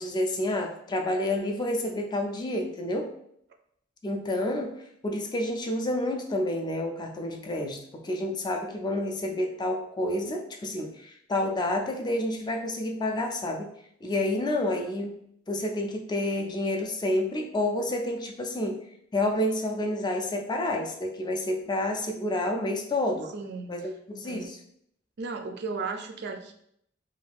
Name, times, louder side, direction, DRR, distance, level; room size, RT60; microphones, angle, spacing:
voice 1, 0.0-3.1 4.0-13.7 14.0-15.2 15.5-18.8 19.1-23.3 23.7-24.6, left 1 dB, 20° left, 3 dB, 0.3 m, -29 dB
voice 2, 23.3-23.7 24.2-24.5 25.2-26.5, right 4 dB, 60° right, 5 dB, 0.4 m, -35 dB
2.6 x 2.3 x 3.4 m, 0.71 s
head